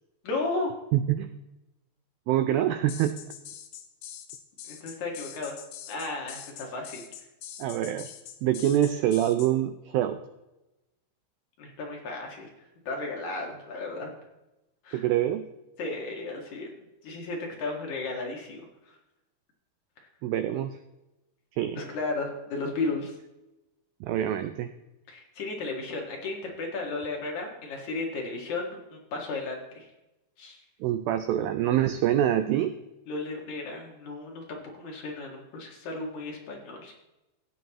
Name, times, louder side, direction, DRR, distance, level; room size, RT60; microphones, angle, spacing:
voice 1, 0.2-0.7 4.7-5.6 5.9-7.0 11.6-12.5 12.9-14.1 14.8-15.0 15.8-16.7 17.0-18.9 21.8-23.2 25.1-29.9 30.4-30.6 33.1-36.9, left 3 dB, 55° left, 0 dB, 2.7 m, -34 dB
voice 2, 0.9-1.3 2.3-3.1 7.6-8.1 8.4-10.2 14.9-15.5 20.2-20.8 21.6-21.8 24.0-24.7 30.8-32.7, right 12 dB, 90° right, 9 dB, 2.1 m, -25 dB
sound 1, 2.9-9.5, left 10 dB, 85° left, 3.2 m, -44 dB
16.0 x 8.9 x 3.0 m, 0.96 s
omnidirectional pair, 4.8 m